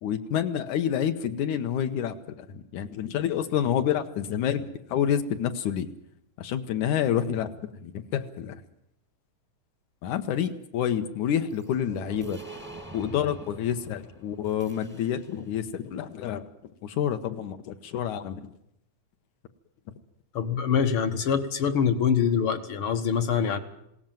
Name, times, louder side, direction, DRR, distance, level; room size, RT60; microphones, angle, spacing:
voice 1, 0.0-5.9 6.4-8.6 10.0-12.4 12.9-16.5 16.8-18.5, left 9 dB, 75° left, 8 dB, 2.4 m, -28 dB
sound 1, 11.5-15.5, right 3 dB, 5° right, 0.9 m, -45 dB
voice 2, 20.3-23.6, left 7 dB, 55° left, 10 dB, 1.5 m, -24 dB
21.0 x 17.5 x 9.1 m, 0.78 s
omnidirectional pair, 3.7 m